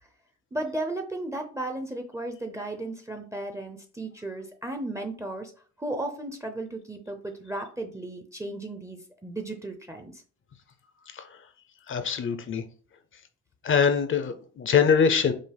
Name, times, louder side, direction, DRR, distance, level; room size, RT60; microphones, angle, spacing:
voice 1, 0.5-5.5 5.8-10.2, right 2 dB, 10° right, 0.6 m, -35 dB
voice 2, 11.9-12.6 13.6-15.3, left 6 dB, 45° left, 0.6 m, -23 dB
5.4 x 2.0 x 3.3 m
cardioid pair, 90°, 30 cm